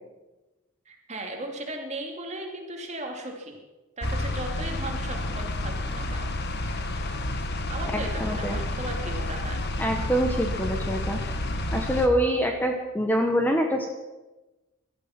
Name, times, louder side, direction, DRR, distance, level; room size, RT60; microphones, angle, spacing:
voice 1, 0.9-3.6 4.0-6.3 7.7-9.7, right 1 dB, 35° right, 2 dB, 2.6 m, -36 dB
sound 1, 4.0-12.1, left 1 dB, 55° left, 1.4 m, -30 dB
voice 2, 7.9-8.6 9.8-11.2 11.7-13.9, equal, 10° left, 3 dB, 1.1 m, -25 dB
17.0 x 12.0 x 6.0 m, 1.1 s
head